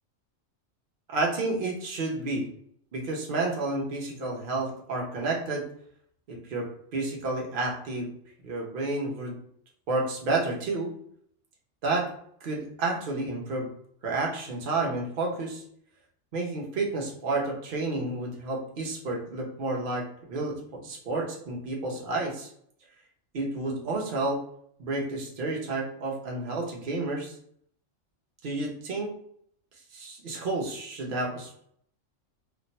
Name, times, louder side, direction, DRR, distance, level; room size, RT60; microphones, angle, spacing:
voice 1, 1.1-2.5 2.9-5.6 6.3-8.1 8.4-9.4 9.9-10.9 11.8-12.1 12.4-13.7 14.0-15.6 16.3-22.5 23.3-24.4 24.8-27.4 28.4-29.1 29.9-31.6, right 2 dB, 50° right, -1 dB, 0.9 m, -30 dB
2.5 x 2.1 x 4.0 m, 0.65 s
omnidirectional pair, 1.3 m